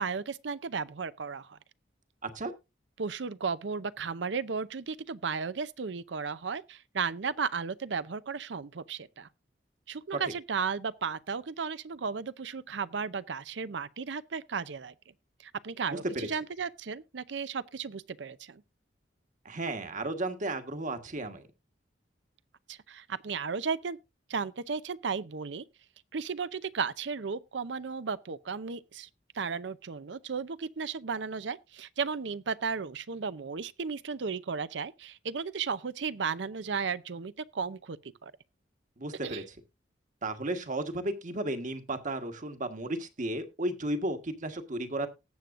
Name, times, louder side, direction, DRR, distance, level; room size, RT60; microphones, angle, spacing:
voice 1, 0.0-1.6 3.0-9.3 9.9-14.9 15.4-18.6 22.7-24.0 24.3-25.7 26.1-29.1 29.3-38.3 39.2-39.4, right 5 dB, 70° right, 0.6 m, -34 dB
voice 2, 15.9-16.3 19.4-21.4 39.0-39.4 40.2-45.1, right 1 dB, 45° right, 1.5 m, -34 dB
19.0 x 7.7 x 2.5 m
head